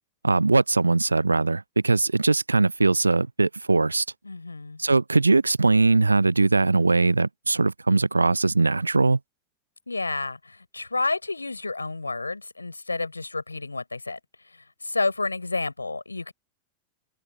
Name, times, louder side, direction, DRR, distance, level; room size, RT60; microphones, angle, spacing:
voice 1, 0.2-4.0 4.8-9.2, right 3 dB, 80° right, 0.5 m, -21 dB
voice 2, 4.2-4.8 9.9-14.2 14.8-16.3, left 3 dB, 80° left, 4.9 m, -30 dB
open air
figure-of-eight pair, 90°, 0 cm